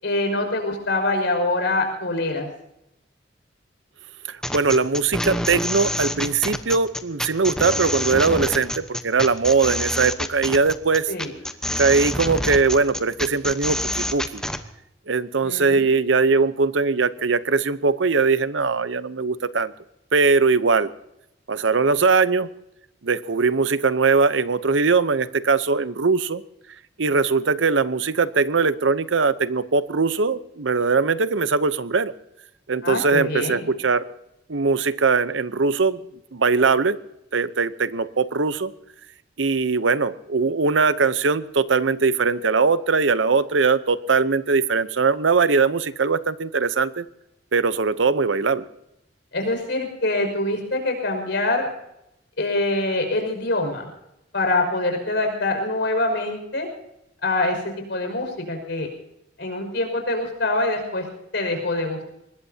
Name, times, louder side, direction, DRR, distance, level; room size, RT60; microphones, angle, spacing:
voice 1, 0.0-2.5 11.1-11.3 15.4-16.1 32.8-33.7 49.3-51.7 52.4-53.9 54.3-56.7 57.2-58.9 59.4-61.1 61.3-62.0, left 2 dB, 70° left, 3 dB, 5.7 m, -24 dB
voice 2, 4.3-11.1 11.8-14.4 15.1-19.7 20.1-20.9 21.5-22.5 23.0-26.4 27.0-32.1 32.7-34.1 34.5-36.0 36.3-37.0 37.3-38.7 39.4-47.0 47.5-48.7, right 4 dB, 85° right, 14 dB, 0.8 m, -21 dB
sound 1, 4.4-14.6, left 1 dB, 5° left, 1.0 m, -27 dB
24.0 x 20.0 x 2.8 m, 0.83 s
head